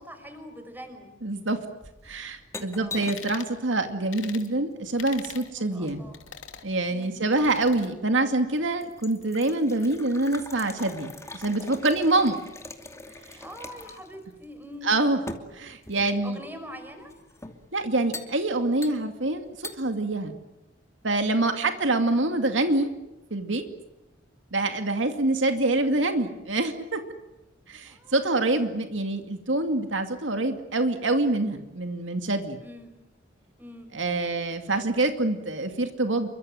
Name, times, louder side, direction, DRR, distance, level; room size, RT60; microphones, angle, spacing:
voice 1, 0.0-1.1 2.7-3.1 5.6-6.2 6.9-7.2 13.4-14.9 16.2-17.1 21.6-21.9 27.8-28.2 32.6-32.9 33.6-33.9, equal, 10° right, 7 dB, 5.6 m, -44 dB
voice 2, 1.2-1.6 2.0-6.0 6.6-12.4 14.8-15.2 15.5-16.4 17.7-20.4 21.0-22.9 23.3-23.6 24.5-27.0 27.7-32.6 33.9-36.3, right 2 dB, 75° right, 6 dB, 2.3 m, -26 dB
sound 1, 1.8-3.4 4.8-6.2 7.0-7.7 8.2-8.3 8.6-14.2 14.4-14.5 15.3-16.3 17.1-17.6 18.1-18.3 18.8-19.3 19.6-19.8, left 2 dB, 15° left, 2.6 m, -42 dB
sound 2, 3.1-3.5 4.1-4.5 5.0-5.5 6.1-6.7 7.3-7.9, left 7 dB, 85° left, 3.1 m, -42 dB
28.5 x 24.5 x 7.8 m, 0.97 s
head